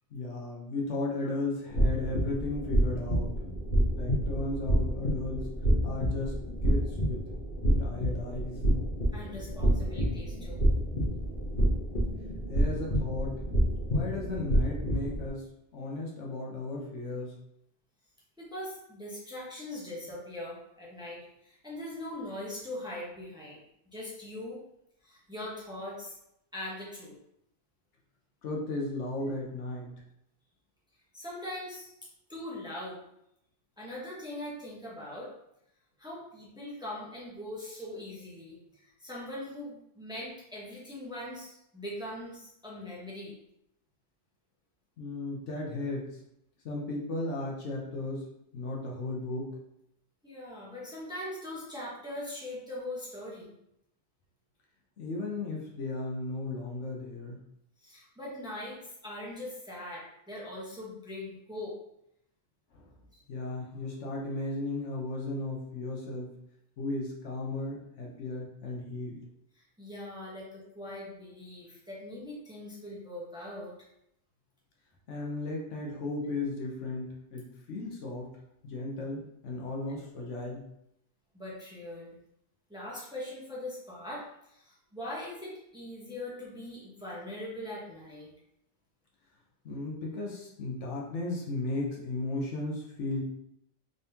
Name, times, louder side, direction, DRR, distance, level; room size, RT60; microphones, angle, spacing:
voice 1, 0.1-3.3 4.0-5.5 5.8-6.4 6.6-7.2 7.8-8.6 12.5-13.4 13.9-15.5 15.7-17.4 28.4-29.9 45.0-46.2 46.6-48.3 48.5-49.6 55.0-57.4 62.7-62.8 63.3-66.4 66.8-69.2 75.1-78.3 78.6-80.7 89.6-93.2, left 2 dB, 75° left, -2 dB, 1.2 m, -35 dB
sound 1, 1.7-15.3, equal, 45° left, 1.1 m, -28 dB
voice 2, 9.1-10.7 18.4-23.6 23.9-24.6 25.0-26.2 26.5-27.1 31.1-31.9 32.3-33.0 33.8-35.3 36.0-43.4 50.2-53.5 57.8-61.7 69.6-73.7 81.3-82.1 82.7-88.3, left 1 dB, 5° right, -6 dB, 0.9 m, -41 dB
3.9 x 3.5 x 2.8 m, 0.79 s
omnidirectional pair, 1.2 m